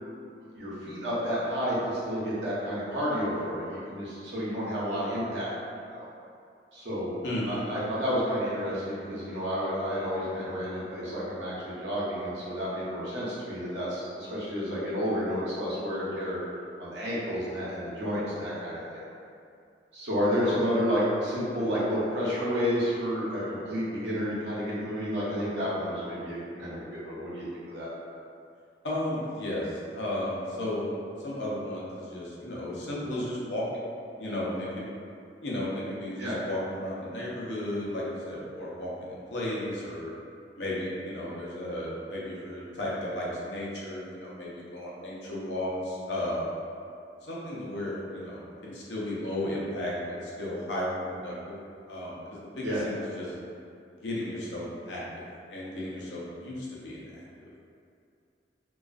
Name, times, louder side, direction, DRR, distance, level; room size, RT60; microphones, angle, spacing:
voice 1, 0.5-5.6 5.9-6.0 6.7-7.2 7.5-16.4 16.8-19.0 19.9-27.9 36.2-36.4 52.6-52.8, equal, 80° right, -9 dB, 0.8 m, -30 dB
voice 2, 7.2-7.6 20.4-20.5 28.8-30.9 31.2-33.6 34.2-34.9 35.4-40.1 40.6-46.5 47.2-49.9 50.2-51.6 51.9-53.3 54.0-57.2, left 1 dB, 80° left, -6 dB, 0.6 m, -34 dB
2.3 x 2.3 x 2.4 m, 2.4 s
head